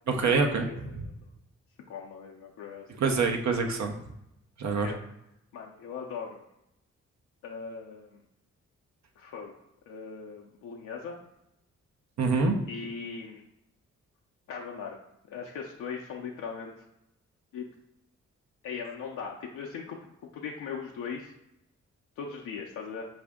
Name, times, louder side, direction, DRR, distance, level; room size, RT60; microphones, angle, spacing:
voice 1, 0.1-1.1 3.0-4.0 4.6-4.9 12.2-12.6, right 4 dB, 65° right, 3 dB, 0.8 m, -26 dB
voice 2, 0.7-1.1 1.9-2.9 4.8-5.0 5.5-6.4 7.4-8.2 9.2-9.6 9.9-11.1 12.7-13.4 14.5-15.0 15.3-16.7 17.5-17.7 18.6-20.0 20.3-21.3 22.2-23.1, left 6 dB, 85° left, -1 dB, 0.5 m, -39 dB
4.9 x 2.6 x 3.5 m, 0.83 s
supercardioid pair, 50°, 30 cm